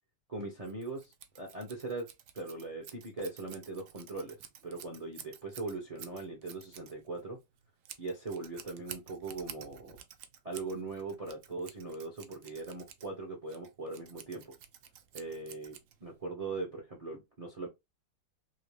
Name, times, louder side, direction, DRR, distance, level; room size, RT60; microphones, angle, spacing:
voice 1, 0.3-2.1 2.3-7.4 8.0-10.0 10.4-14.5 15.1-17.7, right 3 dB, 40° right, 0.5 m, -40 dB
Scissors, 0.6-16.3, right 9 dB, 75° right, 0.7 m, -51 dB
2.9 x 2.7 x 3.1 m
omnidirectional pair, 1.9 m